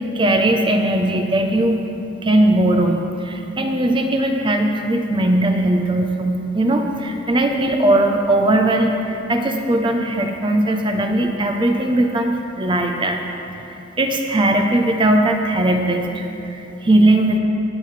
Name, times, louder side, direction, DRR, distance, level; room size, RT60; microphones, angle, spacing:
voice 1, 0.1-1.8 2.2-13.2 13.6-17.4, right 1 dB, 25° right, 3 dB, 0.7 m, -19 dB
20.0 x 7.7 x 3.3 m, 2.9 s
head